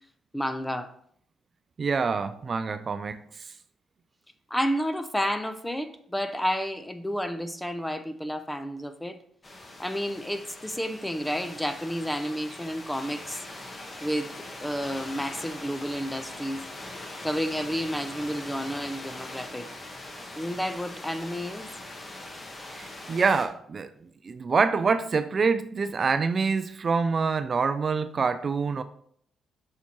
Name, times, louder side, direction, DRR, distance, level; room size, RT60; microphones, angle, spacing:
voice 1, 0.3-0.9 4.5-9.2 9.8-13.4 14.0-16.6 17.2-19.7 20.4-21.7, equal, 5° left, 0.6 m, -31 dB
voice 2, 1.8-3.5 22.7-23.9 24.2-28.8, right 5 dB, 40° right, 0.3 m, -26 dB
sound 1, 9.4-23.5, left 1 dB, 25° left, 1.2 m, -41 dB
7.2 x 5.8 x 2.9 m
cardioid pair, 90°, 0 cm